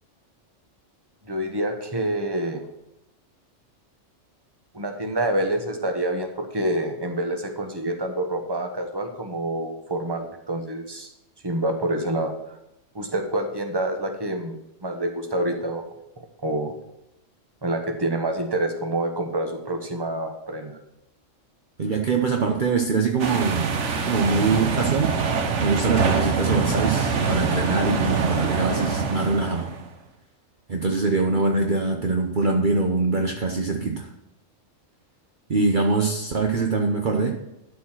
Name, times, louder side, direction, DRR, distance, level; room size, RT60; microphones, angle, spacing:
voice 1, 1.2-2.7 4.7-11.1 11.4-12.3 12.9-14.5 14.8-15.8 16.2-16.7 17.6-20.8, right 1 dB, 20° right, 4 dB, 1.3 m, -27 dB
voice 2, 21.8-23.7 24.1-25.1 25.6-29.7 30.7-34.1 35.5-37.3, right 4 dB, 45° right, 2 dB, 1.0 m, -23 dB
sound 1, 23.2-29.9, right 5 dB, 70° right, 1.3 m, -24 dB
12.5 x 5.0 x 6.1 m, 0.85 s
omnidirectional pair, 1.3 m